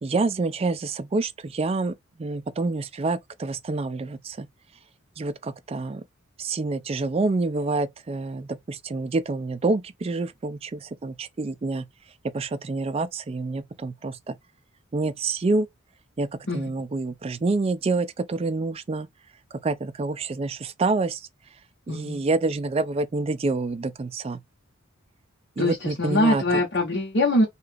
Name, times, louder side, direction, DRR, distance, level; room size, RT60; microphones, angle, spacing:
voice 1, 0.0-4.5 5.2-6.0 6.4-11.9 12.3-14.4 14.9-15.7 16.2-19.1 19.6-21.3 21.9-24.4 25.6-26.6, right 3 dB, 30° right, 0.3 m, -27 dB
voice 2, 21.9-22.2 25.6-27.4, left 1 dB, 60° left, 0.9 m, -23 dB
2.8 x 2.4 x 3.3 m
head